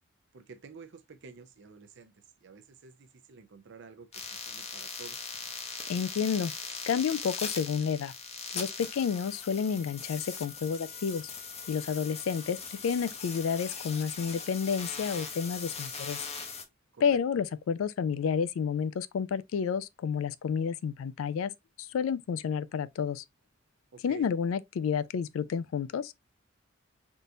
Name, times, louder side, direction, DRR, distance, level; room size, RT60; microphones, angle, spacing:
voice 1, 0.3-5.3 16.9-17.4 23.9-24.4, right 5 dB, 65° right, 0.5 m, -51 dB
sound 1, 4.1-16.6, left 5 dB, 35° left, 0.7 m, -40 dB
voice 2, 5.9-6.5 6.9-8.1 8.5-11.3 11.7-16.2 17.0-21.5 21.8-23.2 24.0-26.1, left 6 dB, 85° left, 0.3 m, -30 dB
3.6 x 2.5 x 2.6 m
head